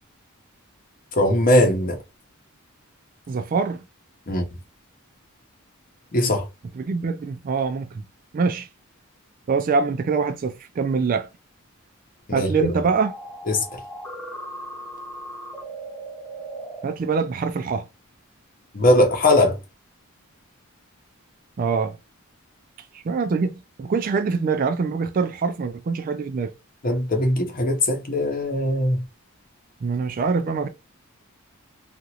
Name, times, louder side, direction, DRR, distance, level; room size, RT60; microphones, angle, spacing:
voice 1, 1.2-2.0 4.3-4.5 6.1-6.5 12.3-12.5 13.5-13.6 18.7-19.6 26.8-29.0, left 1 dB, 40° left, 0.8 m, -20 dB
voice 2, 3.3-3.8 6.7-8.0 8.3-8.7 9.5-11.3 12.3-13.2 16.8-17.9 21.6-22.0 22.9-26.5 29.8-30.7, right 5 dB, 40° right, 0.3 m, -24 dB
sound 1, 12.9-16.8, right 1 dB, 5° left, 0.6 m, -37 dB
2.9 x 2.4 x 2.8 m
head